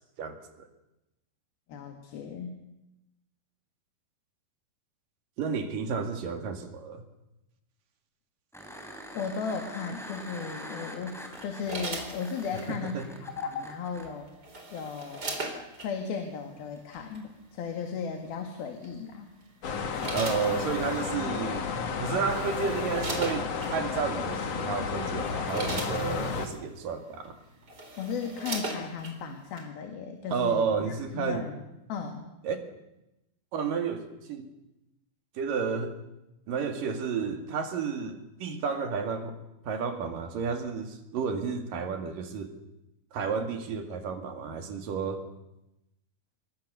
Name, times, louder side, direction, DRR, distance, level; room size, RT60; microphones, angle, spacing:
voice 1, 0.2-0.7 5.4-7.0 12.7-13.1 20.1-21.7 22.0-27.4 30.3-31.5 32.4-32.6 33.5-34.5 35.4-36.0 36.5-39.3 39.6-42.5 43.1-45.2, right 5 dB, 65° right, 6 dB, 3.8 m, -31 dB
voice 2, 1.7-2.6 9.1-14.3 14.7-15.3 15.8-19.3 28.0-31.6 31.9-32.3, left 6 dB, 75° left, 5 dB, 3.9 m, -36 dB
sound 1, 8.5-14.1 16.8-16.9, equal, ahead, 3.3 m, -44 dB
sound 2, 11.3-12.7 14.0-15.9 16.9-17.2 18.8-19.1 19.7-21.0 21.9-22.0 22.3-23.7 24.5-24.6 25.1-26.6 27.2-27.3 27.6-29.2 29.6-29.7, right 2 dB, 25° right, 4.1 m, -38 dB
sound 3, 19.6-26.5, left 5 dB, 50° left, 2.6 m, -32 dB
27.0 x 22.0 x 6.9 m, 0.93 s
omnidirectional pair, 4.3 m